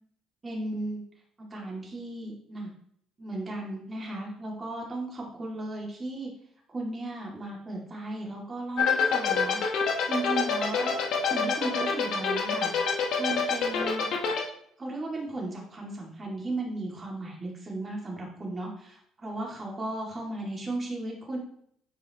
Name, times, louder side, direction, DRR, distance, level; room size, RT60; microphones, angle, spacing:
voice 1, 0.4-1.0 1.5-2.7 3.2-6.3 6.7-9.6 10.1-11.0 11.3-14.1 14.8-21.4, right 2 dB, 30° right, -2 dB, 2.6 m, -35 dB
sound 1, 8.8-14.4, left 6 dB, 65° left, 1.5 m, -25 dB
9.2 x 4.8 x 3.1 m, 0.66 s
supercardioid pair, 75°, 0 cm